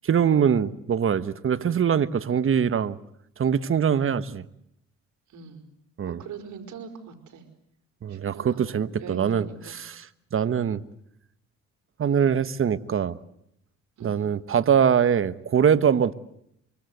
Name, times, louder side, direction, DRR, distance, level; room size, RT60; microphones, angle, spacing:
voice 1, 0.0-3.0 3.4-4.4 6.0-6.2 8.0-10.0 10.3-10.8 12.0-13.2 14.0-16.1, right 7 dB, 45° right, 13 dB, 1.3 m, -23 dB
voice 2, 5.3-5.6 6.1-7.4 8.1-9.8 12.2-12.4 14.0-14.2, right 5 dB, 70° right, 6 dB, 4.9 m, -42 dB
25.0 x 24.5 x 7.9 m, 0.75 s
cardioid pair, 90°, 30 cm